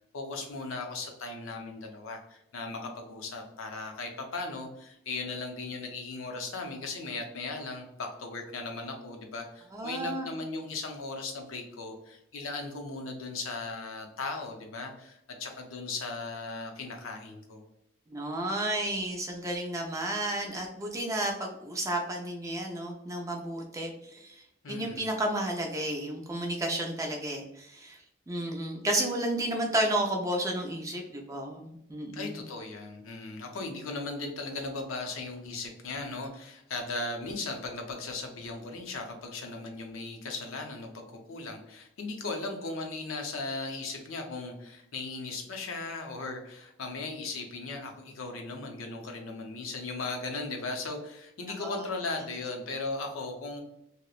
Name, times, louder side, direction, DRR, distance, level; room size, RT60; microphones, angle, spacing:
voice 1, 0.1-17.6 24.6-25.1 32.1-53.6, left 3 dB, 85° left, 3 dB, 0.6 m, -37 dB
voice 2, 9.7-10.3 18.1-24.4 24.7-28.0 28.3-32.4 51.6-51.7, right 1 dB, 15° right, 1 dB, 0.4 m, -32 dB
2.8 x 2.0 x 2.3 m, 0.78 s
head